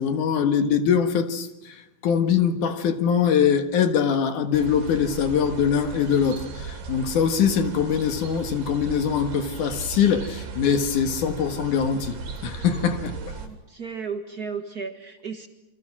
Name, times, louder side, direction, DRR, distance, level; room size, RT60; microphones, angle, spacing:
voice 1, 0.0-1.8 2.0-12.1 12.4-13.3, left 7 dB, 60° left, 2.8 m, -23 dB
sound 1, 4.5-13.5, right 4 dB, 90° right, 5.1 m, -36 dB
voice 2, 13.4-15.5, right 5 dB, 75° right, 0.8 m, -34 dB
29.0 x 25.5 x 6.1 m
omnidirectional pair, 4.4 m